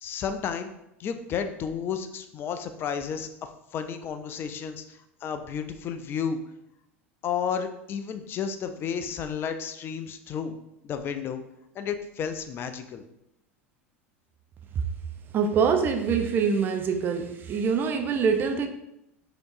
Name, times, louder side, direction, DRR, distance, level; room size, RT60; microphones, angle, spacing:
voice 1, 0.0-0.7 1.0-6.4 7.2-10.6 10.8-11.4 11.7-13.0, left 7 dB, 30° left, 0.4 m, -32 dB
voice 2, 15.3-18.7, right 6 dB, 30° right, 0.4 m, -24 dB
5.0 x 2.9 x 2.6 m
figure-of-eight pair, 80°, 7 cm